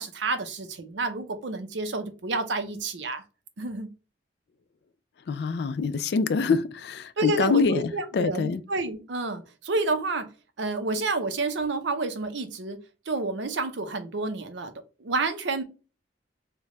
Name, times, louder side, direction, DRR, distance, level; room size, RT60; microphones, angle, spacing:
voice 1, 0.0-3.2 3.6-3.9 7.2-10.3 10.6-12.8 13.1-14.7 15.0-15.6, right 3 dB, 70° right, 0.6 m, -29 dB
voice 2, 5.3-8.6, left 4 dB, 55° left, 0.3 m, -25 dB
3.3 x 2.1 x 3.6 m
head